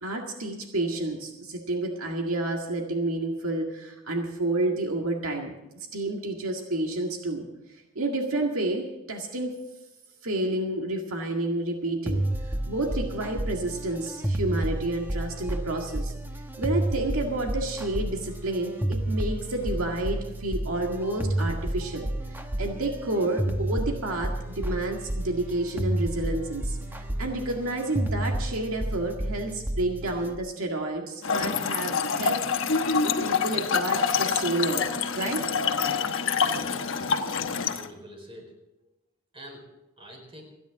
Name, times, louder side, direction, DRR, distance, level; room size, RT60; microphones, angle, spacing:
voice 1, 0.0-5.5 5.9-7.5 8.0-9.6 10.2-12.2 12.7-16.1 16.6-22.1 22.3-32.7 33.0-35.4, right 2 dB, 80° right, 1 dB, 1.9 m, -30 dB
sound 1, 12.1-30.3, right 1 dB, 10° right, 1.1 m, -31 dB
Trickle dribble / Fill (with liquid), 31.2-37.9, left 5 dB, 65° left, 1.1 m, -26 dB
voice 2, 36.4-37.3 37.7-38.5 39.3-39.7 40.0-40.4, equal, 25° right, 1 dB, 4.6 m, -46 dB
29.5 x 10.0 x 3.7 m, 0.97 s
head